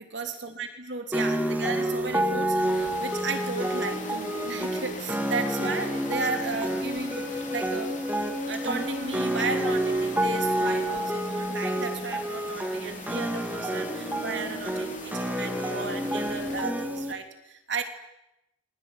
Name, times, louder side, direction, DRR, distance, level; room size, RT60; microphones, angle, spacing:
voice 1, 0.1-8.0 8.4-17.8, right 4 dB, 70° right, 5 dB, 3.3 m, -34 dB
sound 1, 1.1-17.1, right 1 dB, 10° right, 2.5 m, -29 dB
Water, 2.6-16.6, left 4 dB, 40° left, 3.5 m, -42 dB
27.5 x 22.5 x 9.2 m, 0.90 s
head